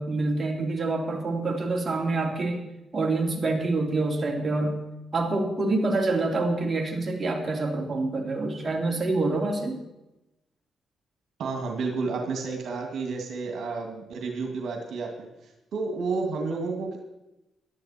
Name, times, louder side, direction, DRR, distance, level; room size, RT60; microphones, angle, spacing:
voice 1, 0.0-2.6 2.9-4.8 5.1-9.8, right 2 dB, 30° right, 1 dB, 3.0 m, -26 dB
voice 2, 11.4-15.3 15.7-17.0, right 4 dB, 70° right, 2 dB, 2.1 m, -31 dB
16.5 x 12.0 x 4.3 m, 0.95 s
cardioid pair, 80°, 0 cm